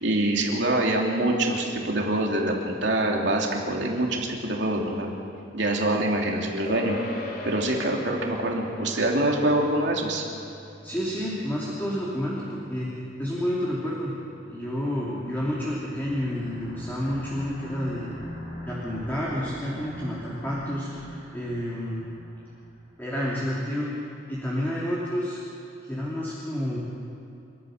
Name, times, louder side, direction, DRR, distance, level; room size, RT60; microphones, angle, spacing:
voice 1, 0.0-5.1 5.5-7.0 7.4-10.2, right 1 dB, 65° right, -1 dB, 3.1 m, -25 dB
sound 1, 6.7-16.3, left 2 dB, 55° left, 3.1 m, -42 dB
voice 2, 10.8-12.9 13.2-14.2 14.5-18.1 18.6-22.1 23.0-23.9 24.3-25.4 25.8-26.8, equal, 10° left, -7 dB, 3.2 m, -30 dB
sound 2, 14.4-23.0, equal, 90° left, 5.2 m, -43 dB
29.5 x 13.5 x 6.7 m, 2.6 s
head